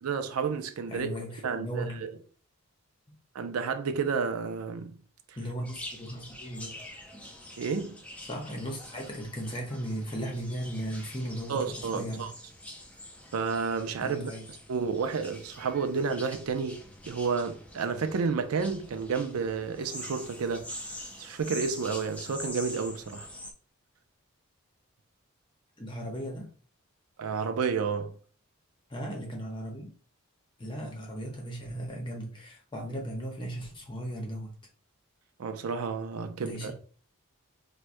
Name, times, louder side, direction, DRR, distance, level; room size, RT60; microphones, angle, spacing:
voice 1, 0.0-1.1 1.4-2.2 3.3-5.0 7.6-8.0 11.5-12.3 13.3-14.3 14.7-20.7 21.2-23.3 27.2-28.1 35.4-36.7, right 5 dB, 80° right, 0.4 m, -31 dB
voice 2, 0.9-2.1 3.1-3.2 5.4-6.8 8.2-12.3 14.0-14.4 25.8-26.5 28.9-29.9 30.6-34.5 36.4-36.7, equal, 20° left, 0.8 m, -37 dB
sound 1, 5.6-23.5, left 1 dB, 5° left, 0.4 m, -45 dB
4.5 x 2.2 x 2.6 m
head